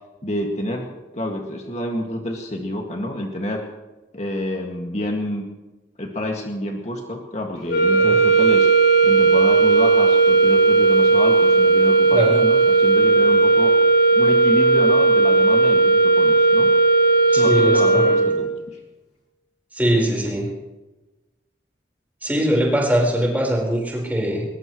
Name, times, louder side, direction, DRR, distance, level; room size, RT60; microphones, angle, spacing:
voice 1, 0.2-3.7 4.1-5.4 6.0-8.7 9.0-13.8 14.1-16.7 17.3-18.8, left 1 dB, 40° left, 0 dB, 2.1 m, -28 dB
sound 1, 7.7-18.6, right 3 dB, 60° left, 6.4 m, -16 dB
voice 2, 17.3-18.2 19.7-20.5 22.2-24.5, equal, 10° right, -1 dB, 4.6 m, -21 dB
21.5 x 21.5 x 3.2 m, 1.1 s
head